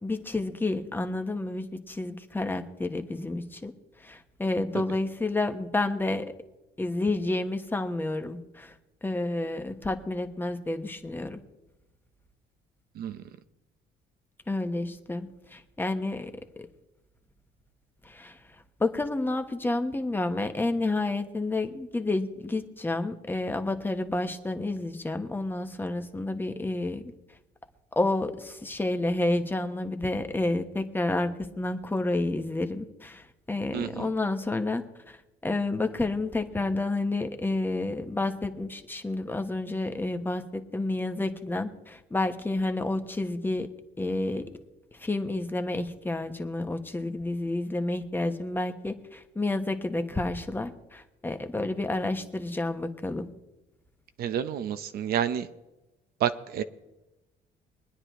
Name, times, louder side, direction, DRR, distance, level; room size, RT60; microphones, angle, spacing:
voice 1, 0.0-3.7 4.0-6.3 6.8-8.7 9.0-11.4 14.5-16.7 18.0-18.4 18.8-27.0 27.9-35.2 35.4-43.7 44.0-44.5 45.0-53.3, left 2 dB, 10° left, 7 dB, 1.1 m, -30 dB
voice 2, 33.7-34.1 54.2-55.5 56.2-56.6, right 9 dB, 65° right, 11 dB, 0.7 m, -29 dB
23.5 x 9.7 x 3.1 m, 1.0 s
cardioid pair, 110°, 17 cm